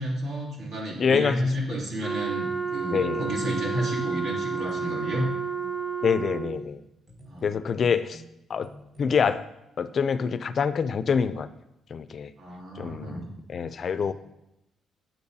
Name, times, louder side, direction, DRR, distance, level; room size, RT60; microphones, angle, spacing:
voice 1, 0.0-5.3 7.3-7.4 12.4-13.2 13.9-14.1, right 1 dB, 70° right, -3 dB, 2.9 m, -31 dB
voice 2, 1.0-1.4 2.9-3.3 6.0-6.8 7.4-8.2 8.5-8.7 9.0-9.5 9.8-11.5 11.9-12.3 12.8-14.1, left 6 dB, 50° left, 14 dB, 0.4 m, -26 dB
Wind instrument woodwind instrument, 2.0-6.7, right 5 dB, ahead, 0.9 m, -31 dB
sound 1, 4.4-5.9 7.1-9.4, right 1 dB, 35° right, 1.6 m, -49 dB
8.5 x 7.7 x 2.7 m, 0.86 s
cardioid pair, 90°, 0 cm